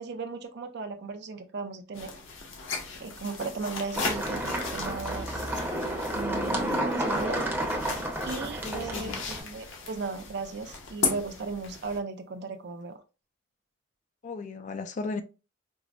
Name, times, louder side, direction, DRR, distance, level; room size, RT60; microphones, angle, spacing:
voice 1, 0.0-2.1 3.0-5.5 6.1-7.4 8.2-13.0, right 4 dB, 60° right, 0.5 m, -36 dB
sound 1, 1.9-12.0, left 4 dB, 70° left, 0.8 m, -37 dB
sound 2, 4.0-9.4, right 1 dB, 10° right, 0.7 m, -31 dB
voice 2, 8.6-9.2 14.2-15.2, left 3 dB, 40° left, 0.3 m, -35 dB
4.5 x 2.0 x 2.4 m
head